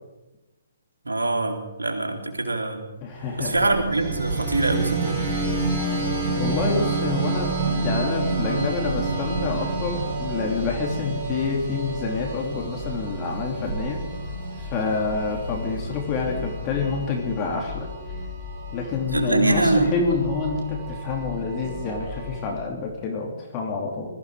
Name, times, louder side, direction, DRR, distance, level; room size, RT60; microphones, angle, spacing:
voice 1, 1.0-2.8 3.4-5.2 19.1-19.9, right 2 dB, 80° right, 2 dB, 3.3 m, -23 dB
voice 2, 3.0-3.5 6.3-14.0 14.6-17.9 18.7-24.1, left 4 dB, 25° left, 1 dB, 2.9 m, -27 dB
Thunder, 3.1-16.7, right 3 dB, 60° right, 3.1 m, -36 dB
sound 1, 3.9-22.5, right 2 dB, 20° right, 6.3 m, -30 dB
20.5 x 14.0 x 4.9 m, 1.1 s
figure-of-eight pair, 135°, 0 cm